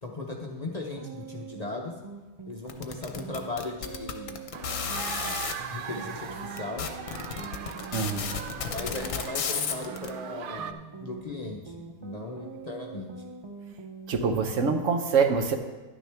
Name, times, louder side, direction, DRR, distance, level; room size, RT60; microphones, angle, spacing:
voice 1, 0.0-1.9 2.5-4.4 5.7-6.9 8.7-13.1, left 2 dB, 35° left, 0 dB, 0.7 m, -37 dB
sound 1, 1.0-14.9, right 4 dB, 30° right, 0.5 m, -44 dB
sound 2, 2.7-5.5 6.2-6.3 6.6-10.1, left 7 dB, 70° left, 1.1 m, -32 dB
sound 3, 4.5-10.7, right 8 dB, 85° right, 0.4 m, -39 dB
voice 2, 7.9-8.3 14.1-15.6, right 5 dB, 65° right, 5 dB, 1.1 m, -25 dB
11.0 x 9.4 x 3.4 m, 1.2 s
omnidirectional pair, 1.5 m